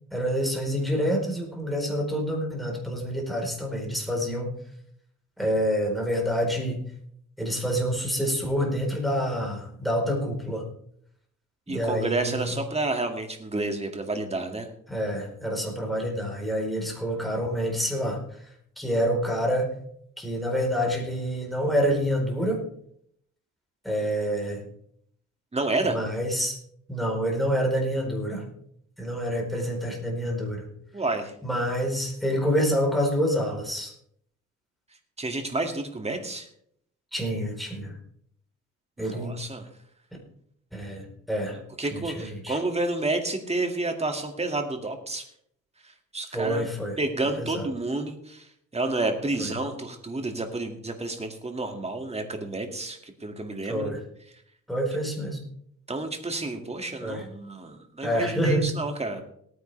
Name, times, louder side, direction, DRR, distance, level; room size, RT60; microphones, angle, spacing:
voice 1, 0.1-4.5 5.4-6.8 7.4-10.7 11.7-12.5 14.9-18.2 18.8-19.7 20.2-22.6 23.8-24.6 25.9-26.6 26.9-28.5 29.0-30.6 31.4-33.9 37.1-38.0 39.0-39.4 40.7-42.6 46.3-47.0 47.4-47.7 49.4-49.5 53.7-54.0 54.7-55.4 57.0-57.2 58.0-58.7, equal, ahead, -1 dB, 4.2 m, -27 dB
voice 2, 11.7-14.7 25.5-26.0 30.9-31.3 35.2-36.5 39.0-39.7 41.5-45.3 45.8-46.7 47.0-53.9 55.9-59.2, right 2 dB, 20° right, 5 dB, 2.2 m, -30 dB
18.5 x 9.7 x 3.4 m, 0.68 s
cardioid pair, 90°, 30 cm